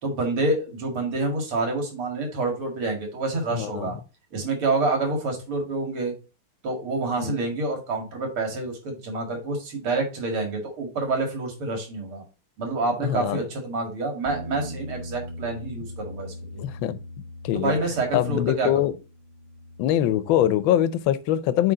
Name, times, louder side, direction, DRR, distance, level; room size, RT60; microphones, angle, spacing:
voice 1, 0.0-4.0 4.3-6.1 6.6-12.2 12.6-16.6 17.5-18.9, right 3 dB, 80° right, 2.9 m, -27 dB
voice 2, 3.5-3.9 7.2-7.3 13.0-13.4 16.6-17.0 17.4-17.8 18.1-18.9 19.8-21.7, left 12 dB, 75° left, 1.3 m, -23 dB
sound 1, 14.2-20.5, equal, 35° right, 0.8 m, -40 dB
8.2 x 3.4 x 3.8 m
omnidirectional pair, 2.4 m